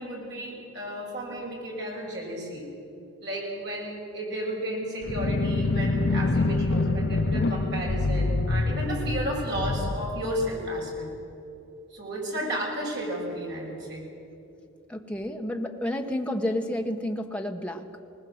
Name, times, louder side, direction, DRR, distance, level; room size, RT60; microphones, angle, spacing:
voice 1, 0.0-2.7 3.2-11.1 11.9-14.0, right 1 dB, 55° right, -3 dB, 6.7 m, -33 dB
sound 1, 5.0-11.0, left 3 dB, 55° left, 0.6 m, -26 dB
voice 2, 14.9-17.9, left 1 dB, 5° left, 3 dB, 1.2 m, -30 dB
20.0 x 19.5 x 7.9 m, 2.8 s
head